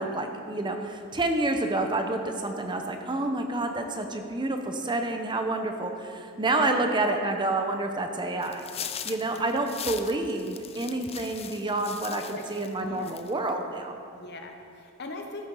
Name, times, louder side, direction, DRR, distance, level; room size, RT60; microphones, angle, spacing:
voice 1, 0.0-8.6 9.0-14.0, right 2 dB, 20° right, 5 dB, 0.7 m, -29 dB
sound 1, 8.4-12.7 13.0-13.5, left 8 dB, 25° left, 0.4 m, -39 dB
voice 2, 9.2-9.6 12.3-12.4 12.7-13.2 14.1-15.5, left 3 dB, 50° left, 3 dB, 1.1 m, -40 dB
13.5 x 6.9 x 5.4 m, 2.4 s
head